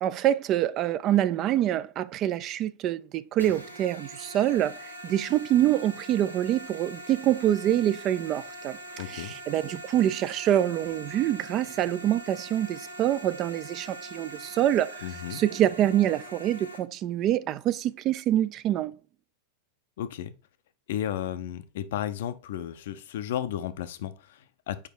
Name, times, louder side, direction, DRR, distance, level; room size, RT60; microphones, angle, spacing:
voice 1, 0.0-8.8 9.1-15.0 15.3-18.9, right 12 dB, 35° right, 0.3 m, -26 dB
sound 1, 3.4-16.8, right 1 dB, 85° right, 1.2 m, -43 dB
voice 2, 9.0-9.3 15.0-15.4 20.0-20.3 20.9-24.9, left 11 dB, 55° left, 0.5 m, -33 dB
4.8 x 4.7 x 4.4 m
figure-of-eight pair, 90°, 0 cm